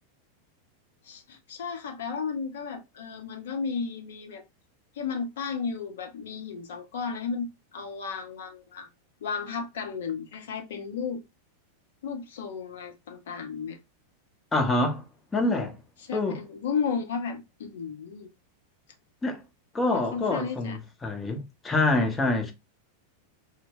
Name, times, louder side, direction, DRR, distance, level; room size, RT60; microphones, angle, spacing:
voice 1, 1.0-4.4 4.9-8.9 9.2-11.2 12.0-13.8 16.0-18.3 19.9-20.8, left 5 dB, 60° left, 0.6 m, -34 dB
voice 2, 14.5-15.0 15.3-15.8 16.1-16.4 19.2-19.4 19.7-22.5, left 2 dB, 15° left, 0.6 m, -26 dB
2.1 x 2.1 x 3.4 m
figure-of-eight pair, 90°, 0 cm